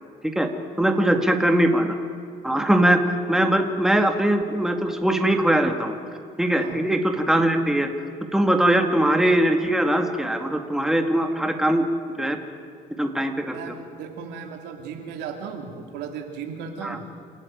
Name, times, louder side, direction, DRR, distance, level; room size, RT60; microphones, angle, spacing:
voice 1, 0.8-1.9 2.4-6.0 6.4-7.9 8.3-11.9 12.2-12.4 13.0-13.6 16.8-17.0, right 1 dB, 5° right, 4 dB, 2.0 m, -21 dB
voice 2, 13.5-17.0, right 6 dB, 90° right, 3 dB, 2.9 m, -36 dB
28.5 x 13.5 x 9.3 m, 2.4 s
cardioid pair, 110°, 17 cm